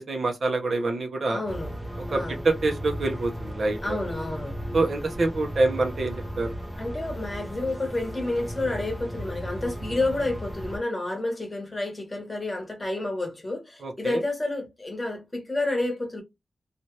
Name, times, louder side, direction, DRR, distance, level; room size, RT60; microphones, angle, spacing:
voice 1, 0.0-1.4 2.1-4.0 4.7-6.5 13.8-14.2, right 2 dB, 50° right, 0.7 m, -26 dB
voice 2, 1.3-1.7 2.1-2.4 3.8-4.6 6.8-16.2, left 2 dB, 20° left, 1.1 m, -30 dB
sound 1, 1.5-10.8, equal, 5° right, 0.6 m, -35 dB
2.8 x 2.4 x 3.1 m
wide cardioid pair, 170°, 0 cm